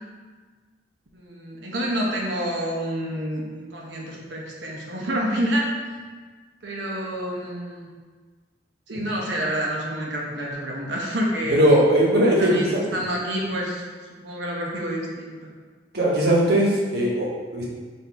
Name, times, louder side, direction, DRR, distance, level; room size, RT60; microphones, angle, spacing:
voice 1, 1.1-5.7 6.6-7.9 8.9-11.6 12.4-12.7 12.9-13.8 14.1-15.5, equal, 90° right, -2 dB, 0.9 m, -28 dB
voice 2, 11.5-12.8 15.9-17.6, right 1 dB, 60° right, -4 dB, 1.0 m, -19 dB
4.2 x 2.6 x 4.5 m, 1.4 s
head